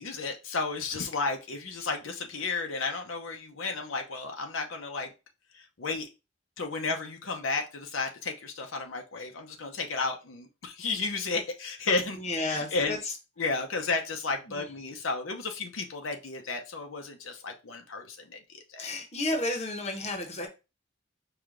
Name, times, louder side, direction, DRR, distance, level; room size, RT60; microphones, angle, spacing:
voice 1, 0.0-5.1 5.8-6.1 6.6-13.0 13.4-18.9, left 3 dB, 85° left, 4 dB, 0.8 m, -33 dB
voice 2, 12.1-13.1 14.5-14.7 18.8-20.5, left 2 dB, 35° left, 3 dB, 0.9 m, -32 dB
4.9 x 2.4 x 3.7 m, 0.28 s
head